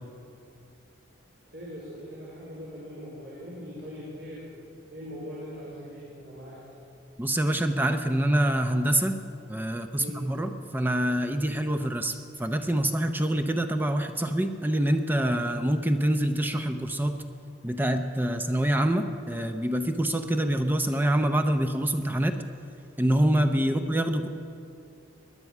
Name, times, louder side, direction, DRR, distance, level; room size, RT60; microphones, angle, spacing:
voice 1, 1.5-4.4 4.9-6.6 9.9-10.2 23.6-23.8, equal, 70° right, -8 dB, 4.1 m, -41 dB
voice 2, 7.2-9.2 9.5-17.2 17.6-22.3 23.0-24.3, right 1 dB, 10° right, 7 dB, 0.6 m, -26 dB
19.5 x 11.0 x 6.0 m, 2.6 s
head